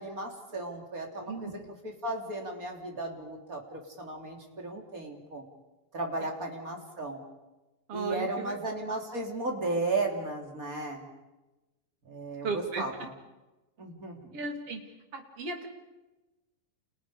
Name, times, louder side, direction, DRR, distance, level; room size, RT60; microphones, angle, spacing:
voice 1, 0.0-5.4 5.9-7.2 7.9-11.1 12.0-13.1 13.8-14.4, right 2 dB, 25° right, 2 dB, 3.3 m, -35 dB
voice 2, 1.3-1.7 7.9-8.6 12.4-12.9 14.3-14.8 15.1-15.7, right 4 dB, 45° right, 3 dB, 3.7 m, -35 dB
30.0 x 29.0 x 5.0 m, 1.1 s
omnidirectional pair, 3.9 m